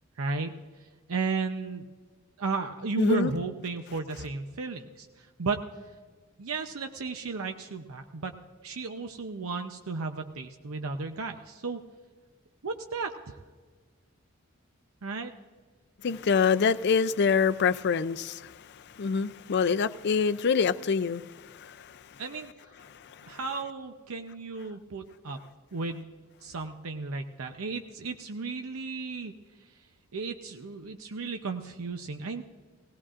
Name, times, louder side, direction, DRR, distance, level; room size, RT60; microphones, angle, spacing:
voice 1, 0.2-0.5 0.8-1.9 2.4-5.7 6.4-8.3 8.6-11.8 12.6-13.4 15.0-15.3 22.2-22.5 23.3-25.4 25.7-26.1 26.4-29.3 30.1-32.4, right 4 dB, 85° right, 0.7 m, -34 dB
voice 2, 3.0-3.3 16.0-22.2 22.9-23.4, left 5 dB, 50° left, 0.4 m, -26 dB
19.0 x 17.0 x 2.5 m
head